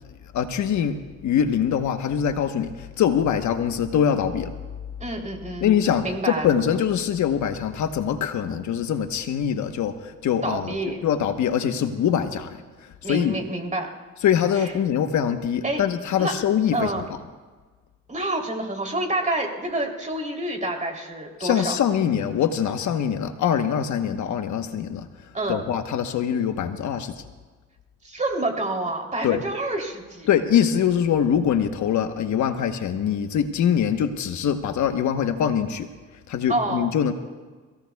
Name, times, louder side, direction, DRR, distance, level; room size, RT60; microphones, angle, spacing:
voice 1, 0.3-1.0 1.2-4.5 5.6-10.7 11.0-13.4 14.2-17.2 21.4-25.1 25.5-27.2 29.2-29.4 30.3-35.9 36.3-37.1, left 8 dB, 70° left, 7 dB, 1.2 m, -23 dB
voice 2, 5.0-5.7 6.0-6.6 10.4-11.1 13.0-13.9 14.6-14.7 15.6-15.8 16.2-16.3 16.7-17.0 18.1-21.8 25.3-25.6 28.0-30.3 36.5-36.9, right 2 dB, 25° right, 2 dB, 3.3 m, -28 dB
29.5 x 17.0 x 2.3 m, 1.4 s
cardioid pair, 90°, 30 cm